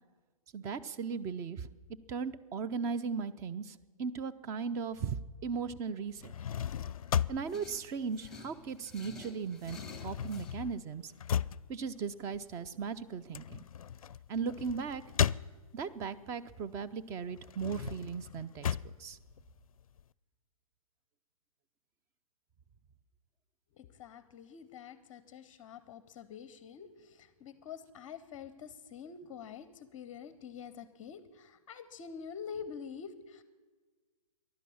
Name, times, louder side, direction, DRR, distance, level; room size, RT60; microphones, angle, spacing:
voice 1, 0.5-1.7 2.1-6.3 7.3-11.1 11.7-13.6 14.3-15.0 15.7-19.2, right 5 dB, 15° right, 13 dB, 0.4 m, -37 dB
sound 1, 6.1-8.9 9.2-16.0 16.5-20.0, left 9 dB, 70° left, 0.4 m, -36 dB
sound 2, 7.5-10.6, left 3 dB, ahead, 1.4 m, -51 dB
voice 2, 23.8-33.4, left 7 dB, 25° left, 14 dB, 0.7 m, -46 dB
15.0 x 11.5 x 7.0 m, 1.4 s
hypercardioid pair, 135°, 19 cm